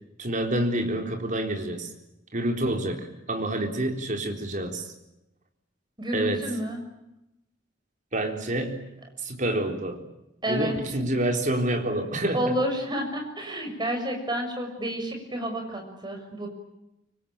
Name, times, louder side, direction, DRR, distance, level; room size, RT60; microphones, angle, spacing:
voice 1, 0.2-1.9 2.3-4.9 6.1-6.4 8.1-8.9 9.2-10.0 10.5-12.4, right 1 dB, 40° right, 4 dB, 3.9 m, -28 dB
voice 2, 6.0-6.8 10.4-10.8 12.3-16.5, equal, 25° right, 3 dB, 6.4 m, -30 dB
26.0 x 24.5 x 9.0 m, 0.89 s
head